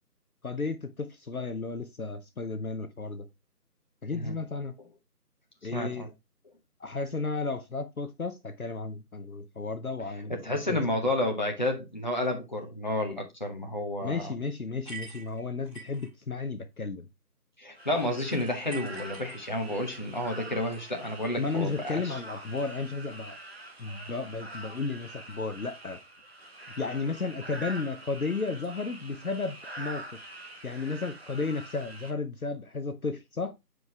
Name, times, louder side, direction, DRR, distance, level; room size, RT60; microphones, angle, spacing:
voice 1, 0.4-3.3 4.0-4.8 5.6-6.1 6.8-10.8 14.0-17.1 21.4-23.4 23.8-26.0 26.6-30.1 30.4-33.6, left 4 dB, 60° left, 0.8 m, -33 dB
voice 2, 5.7-6.1 10.3-14.3 17.6-22.1, left 1 dB, 30° left, 1.1 m, -30 dB
Ice Dropped Into Glass, 14.8-16.1 18.7-19.9, right 4 dB, 5° left, 1.9 m, -44 dB
sound 1, 17.8-32.1, right 2 dB, 40° right, 1.1 m, -45 dB
7.9 x 4.8 x 3.3 m
figure-of-eight pair, 165°, 48 cm